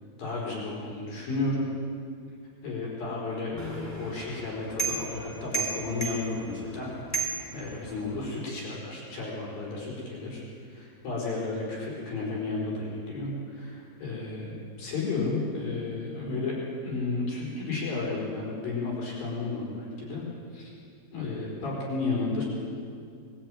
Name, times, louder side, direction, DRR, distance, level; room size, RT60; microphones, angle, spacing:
voice 1, 0.2-1.7 2.6-10.4 10.7-20.2 20.5-20.7 21.1-22.4, left 3 dB, 65° left, -4 dB, 6.4 m, -33 dB
sound 1, 3.6-8.3, right 4 dB, 5° left, 1.5 m, -35 dB
21.5 x 13.5 x 9.0 m, 2.3 s
omnidirectional pair, 4.5 m